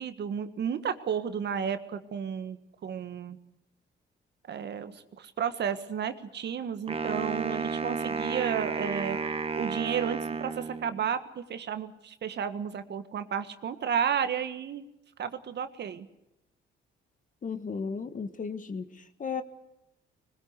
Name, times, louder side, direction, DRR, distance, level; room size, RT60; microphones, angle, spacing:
voice 1, 0.0-2.6 2.8-3.4 4.5-9.2 9.6-14.9 15.2-16.1, right 8 dB, 60° right, 10 dB, 1.7 m, -32 dB
Wind instrument woodwind instrument, 6.9-11.1, right 4 dB, 30° right, 1.5 m, -32 dB
voice 2, 17.4-18.9 19.2-19.4, left 5 dB, 40° left, 11 dB, 1.8 m, -34 dB
20.5 x 20.5 x 8.2 m, 0.88 s
cardioid pair, 90°, 20 cm